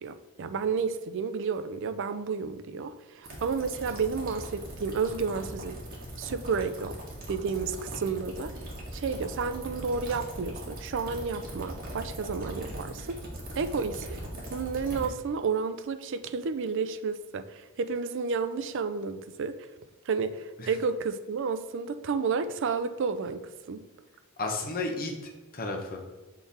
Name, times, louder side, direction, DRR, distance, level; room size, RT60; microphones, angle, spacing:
voice 1, 0.0-5.8 6.2-7.0 7.3-8.5 8.9-13.3 13.6-14.2 14.5-19.7 20.1-23.8, right 5 dB, 60° right, 10 dB, 0.4 m, -31 dB
sound 1, 3.2-15.1, right 1 dB, 45° right, 1.7 m, -40 dB
voice 2, 24.4-26.0, left 2 dB, 45° left, 2 dB, 1.1 m, -33 dB
6.8 x 3.8 x 4.2 m, 1.2 s
head